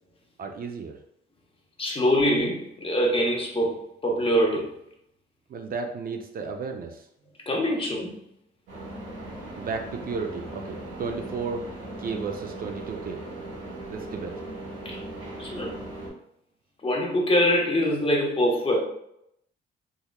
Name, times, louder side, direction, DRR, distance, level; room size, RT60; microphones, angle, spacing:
voice 1, 0.4-1.0 5.5-7.1 9.6-11.7 12.0-13.2 13.9-14.4, right 5 dB, 45° right, 4 dB, 0.4 m, -33 dB
voice 2, 1.8-4.7 7.5-8.2 14.8-15.0 15.4-15.8 16.8-18.8, equal, 25° left, -1 dB, 0.9 m, -24 dB
sound 1, 8.7-16.1, right 1 dB, 65° right, 1.5 m, -38 dB
3.7 x 3.0 x 2.2 m, 0.76 s
cardioid pair, 90°, 20 cm